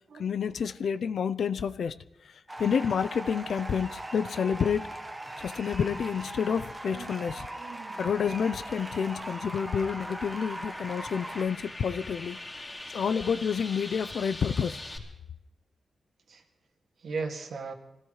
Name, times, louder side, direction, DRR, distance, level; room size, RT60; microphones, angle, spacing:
voice 1, 0.1-2.0 2.2-4.9 5.4-7.5 7.9-12.4 12.9-14.8, left 7 dB, 60° left, 0.5 m, -29 dB
sound 1, 2.5-11.5, right 1 dB, 10° right, 1.2 m, -40 dB
voice 2, 6.8-8.0 13.1-13.3 16.3-16.4 17.0-17.7, right 4 dB, 60° right, 2.0 m, -38 dB
sound 2, 8.0-15.0, left 1 dB, 20° left, 2.8 m, -43 dB
26.0 x 17.0 x 3.2 m
wide cardioid pair, 170°, 0 cm